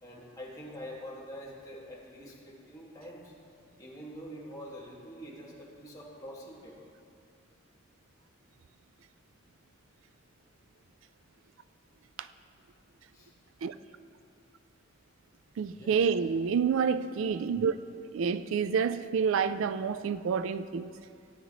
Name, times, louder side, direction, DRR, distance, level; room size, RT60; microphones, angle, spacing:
voice 1, 0.0-3.3 3.8-6.7 13.1-13.3 15.7-16.1, equal, 15° left, 1.9 m, -45 dB
voice 2, 15.6-17.7 18.1-20.9, right 6 dB, 75° right, 0.3 m, -28 dB
17.5 x 9.5 x 3.1 m
head